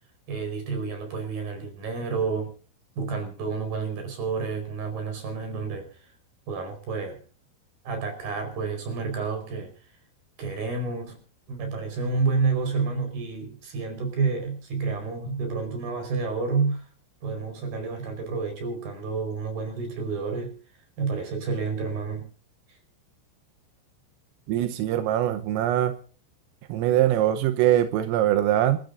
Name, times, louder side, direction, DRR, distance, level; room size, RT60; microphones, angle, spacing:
voice 1, 0.3-2.5 3.0-6.1 6.5-7.2 7.8-9.9 10.4-11.2 11.5-16.9 17.2-20.5 21.0-22.2 22.7-22.8, right 4 dB, 45° right, 6 dB, 6.1 m, -29 dB
voice 2, 24.5-25.9 26.7-28.8, right 12 dB, 85° right, 9 dB, 3.6 m, -22 dB
29.0 x 13.0 x 2.6 m, 0.40 s
omnidirectional pair, 5.8 m